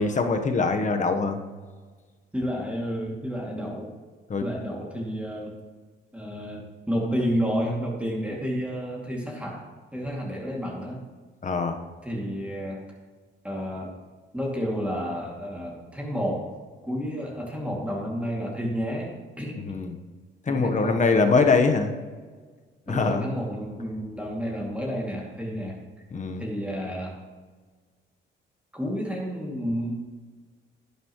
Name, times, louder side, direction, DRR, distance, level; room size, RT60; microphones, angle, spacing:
voice 1, 0.0-1.4 4.3-4.4 11.4-11.8 19.6-19.9 20.5-21.9 22.9-23.2 26.1-26.4, left 4 dB, 40° left, 6 dB, 1.2 m, -23 dB
voice 2, 2.3-3.9 4.4-5.6 6.1-11.0 12.0-12.9 13.4-14.0 14.3-16.5 16.8-19.6 20.5-21.4 22.9-25.8 26.4-27.2 28.7-29.9, equal, 5° right, -2 dB, 2.5 m, -30 dB
11.0 x 10.0 x 3.1 m, 1.4 s
cardioid pair, 90°, 20 cm